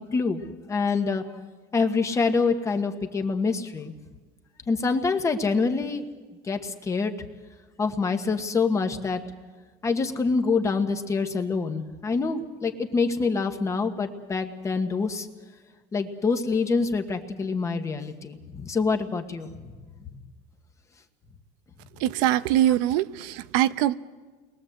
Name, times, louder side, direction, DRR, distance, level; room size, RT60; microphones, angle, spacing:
voice 1, 0.1-0.4 0.7-1.2 1.7-3.9 4.7-6.1 6.4-7.1 7.8-9.2 9.8-15.3 15.9-19.5, left 4 dB, 15° left, 5 dB, 1.3 m, -26 dB
voice 2, 22.0-23.9, right 13 dB, 85° right, 14 dB, 0.9 m, -23 dB
30.0 x 21.5 x 8.0 m, 1.4 s
cardioid pair, 175°, 18 cm